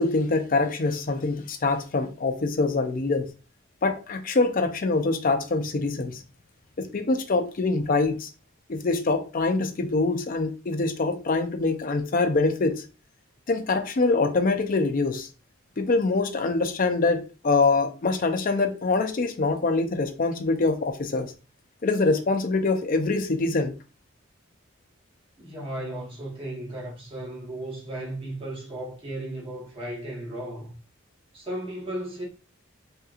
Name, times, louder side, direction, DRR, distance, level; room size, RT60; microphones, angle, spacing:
voice 1, 0.0-3.3 3.8-6.2 6.8-8.3 8.7-12.8 13.5-15.3 15.8-21.3 21.8-23.7, left 3 dB, 40° left, 0.5 m, -24 dB
voice 2, 25.4-30.7 31.3-32.2, right 1 dB, 25° right, 1.0 m, -35 dB
3.5 x 2.9 x 2.4 m
head